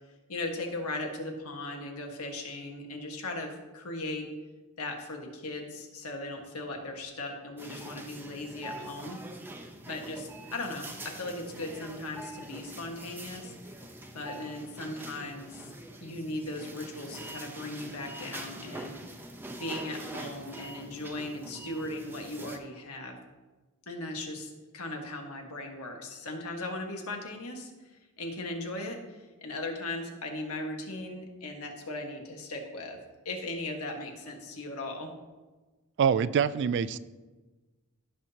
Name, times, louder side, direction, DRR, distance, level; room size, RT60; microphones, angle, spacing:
voice 1, 0.3-4.2 4.8-9.2 9.9-13.5 14.1-15.7 16.0-18.9 19.6-23.2 23.9-33.0 33.2-35.1, left 2 dB, 80° left, 2 dB, 1.5 m, -38 dB
sound 1, 7.6-22.6, right 1 dB, 10° right, 0.7 m, -44 dB
voice 2, 36.0-37.0, right 7 dB, 55° right, 17 dB, 0.3 m, -25 dB
16.5 x 5.9 x 2.8 m, 1.2 s
head